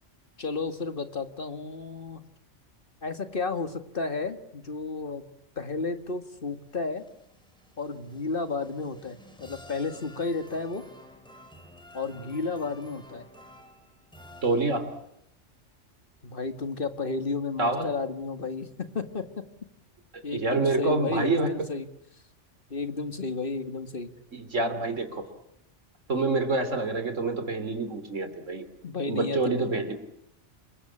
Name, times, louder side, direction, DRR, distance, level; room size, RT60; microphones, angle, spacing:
voice 1, 0.4-2.2 3.0-5.2 5.6-7.1 7.8-10.8 11.9-13.2 16.2-19.4 20.2-21.9 22.7-24.1 28.8-29.9, left 4 dB, 45° left, 9 dB, 2.1 m, -32 dB
sound 1, 6.2-15.1, left 1 dB, 5° left, 4.5 m, -52 dB
voice 2, 14.4-14.9 17.6-17.9 20.1-21.5 24.3-25.3 26.1-28.6 29.1-29.9, right 3 dB, 90° right, 9 dB, 3.4 m, -27 dB
27.5 x 22.0 x 8.7 m, 0.77 s
omnidirectional pair, 1.3 m